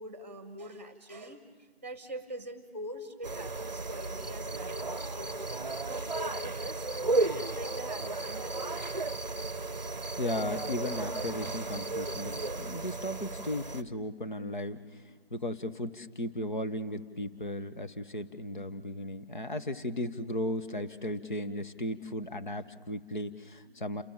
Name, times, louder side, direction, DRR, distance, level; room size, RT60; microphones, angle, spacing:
voice 1, 0.0-6.9 7.3-9.0, equal, 15° right, 11 dB, 1.2 m, -44 dB
sound 1, 3.2-13.8, right 3 dB, 45° right, 0.7 m, -34 dB
voice 2, 10.2-24.0, left 1 dB, 50° left, 8 dB, 1.4 m, -36 dB
29.5 x 21.0 x 7.2 m, 1.5 s
figure-of-eight pair, 165°, 31 cm